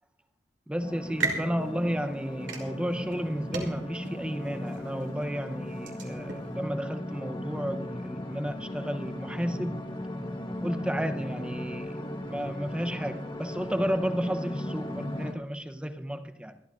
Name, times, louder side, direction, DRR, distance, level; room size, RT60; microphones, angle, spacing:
voice 1, 0.7-9.9 10.6-16.6, equal, 5° right, 0.7 m, -32 dB
sound 1, 0.8-15.3, left 1 dB, 25° left, 1.2 m, -37 dB
sound 2, 0.9-6.5, right 3 dB, 75° right, 2.8 m, -38 dB
25.5 x 11.5 x 2.5 m
head